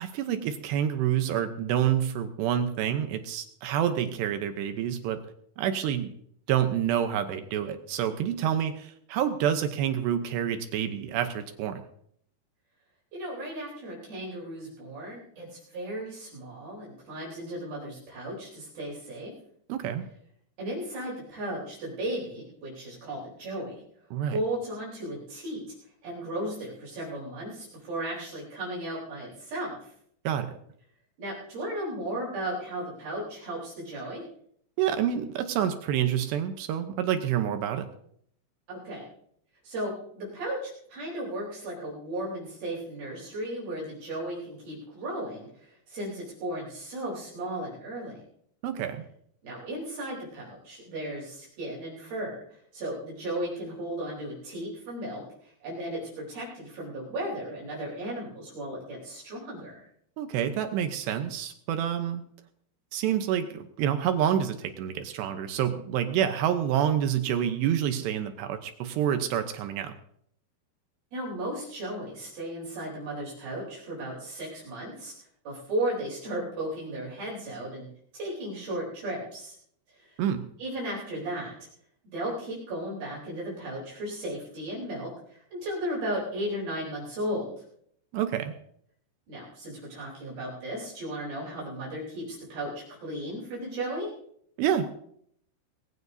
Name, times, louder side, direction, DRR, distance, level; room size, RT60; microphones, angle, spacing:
voice 1, 0.0-5.2 5.6-6.1 6.5-11.8 19.7-20.1 24.1-24.4 30.2-30.5 34.8-37.9 48.6-49.0 60.2-62.2 62.9-69.9 80.2-80.5 88.1-88.5 94.6-95.0, right 9 dB, 75° right, 8 dB, 2.7 m, -28 dB
voice 2, 13.1-19.3 20.6-23.8 24.3-25.6 26.0-29.9 31.2-34.2 38.7-39.1 39.6-48.2 49.4-59.8 71.1-75.1 75.5-77.9 78.1-79.6 79.9-80.2 80.6-81.5 82.1-87.5 89.3-94.1, right 1 dB, 50° right, -5 dB, 5.5 m, -35 dB
20.5 x 15.5 x 2.7 m, 0.67 s
omnidirectional pair, 5.5 m